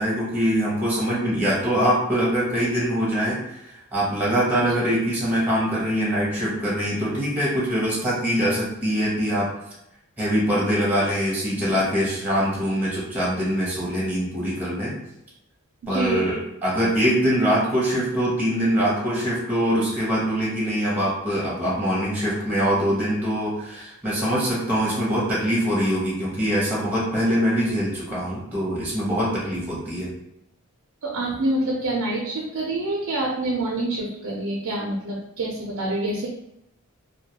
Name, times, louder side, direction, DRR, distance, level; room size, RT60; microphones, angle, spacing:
voice 1, 0.0-9.5 10.2-14.9 15.9-30.1, equal, 10° right, -7 dB, 0.7 m, -23 dB
voice 2, 15.8-16.3 31.0-36.3, right 2 dB, 75° right, -2 dB, 0.4 m, -26 dB
2.2 x 2.2 x 2.8 m, 0.82 s
head